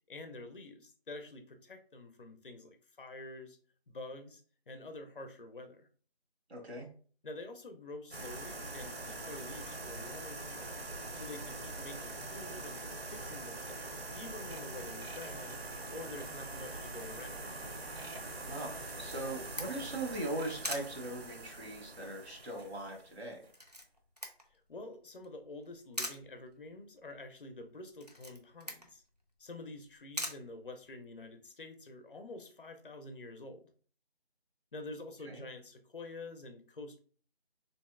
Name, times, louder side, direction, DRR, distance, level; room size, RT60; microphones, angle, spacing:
voice 1, 0.1-3.6 3.9-5.9 7.2-10.9 11.1-15.6 15.9-17.5 24.5-29.0 29.4-33.6 34.7-37.0, left 2 dB, 55° left, 7 dB, 0.6 m, -48 dB
voice 2, 6.5-6.9 18.4-23.4 35.2-35.4, right 1 dB, 85° right, 1 dB, 1.4 m, -40 dB
sound 1, 8.1-23.5, right 2 dB, 70° right, 0.8 m, -43 dB
Camera, 18.8-31.3, equal, 40° right, 0.4 m, -45 dB
3.0 x 2.7 x 2.3 m, 0.43 s
figure-of-eight pair, 175°, 32 cm